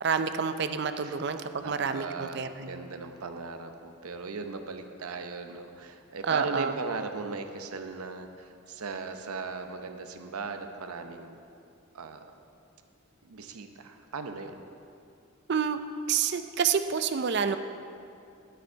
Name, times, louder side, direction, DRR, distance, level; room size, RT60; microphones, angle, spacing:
voice 1, 0.0-2.7 6.2-6.8 15.5-15.8 16.1-17.6, right 6 dB, 50° right, 10 dB, 0.4 m, -28 dB
voice 2, 1.6-11.4 11.9-12.2 13.2-14.5, right 4 dB, 90° right, 7 dB, 0.7 m, -38 dB
9.9 x 9.1 x 4.5 m, 2.5 s
head